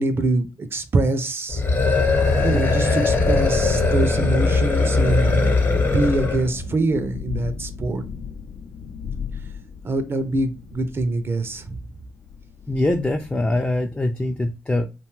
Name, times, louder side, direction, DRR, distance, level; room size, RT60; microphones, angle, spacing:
voice 1, 0.0-1.6 2.4-5.5 5.9-8.0 9.8-11.8, right 2 dB, 45° right, 0.5 m, -24 dB
sound 1, 1.5-6.5, left 3 dB, 45° left, 0.9 m, -20 dB
Thunderstorm, 2.1-13.6, left 6 dB, 75° left, 0.5 m, -35 dB
voice 2, 12.7-14.9, left 1 dB, 20° left, 0.4 m, -23 dB
2.6 x 2.2 x 3.0 m
supercardioid pair, 55°, 6 cm